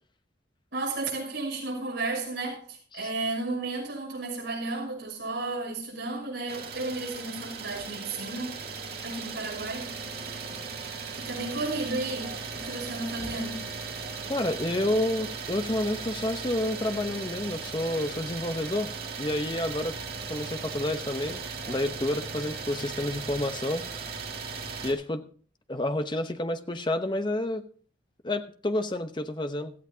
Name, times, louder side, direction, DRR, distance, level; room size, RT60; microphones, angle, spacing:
voice 1, 0.7-8.6 9.0-9.9 10.8-13.7, right 2 dB, 70° right, 6.3 m, -33 dB
Idling, 6.5-24.9, right 5 dB, 55° right, 2.5 m, -37 dB
voice 2, 14.3-18.9 19.2-20.0 20.3-21.4 21.7-23.8 24.8-25.2 25.7-27.6 28.2-29.7, left 1 dB, 25° left, 0.9 m, -29 dB
17.0 x 14.0 x 2.8 m
head